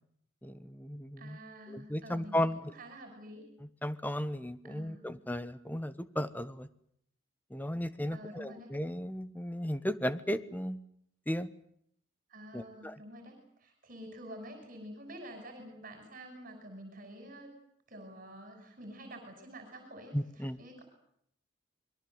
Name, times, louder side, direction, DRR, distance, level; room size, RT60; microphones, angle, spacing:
voice 1, 0.4-1.4 1.7-2.6 3.8-6.7 7.5-10.8 11.3-11.5 12.5-13.0 20.1-20.6, equal, 10° left, 13 dB, 1.2 m, -35 dB
voice 2, 1.2-2.5 2.8-3.4 4.6-5.1 8.1-8.7 12.3-17.5 17.9-20.8, equal, 45° right, 5 dB, 6.1 m, -48 dB
27.0 x 22.5 x 8.0 m, 0.69 s
head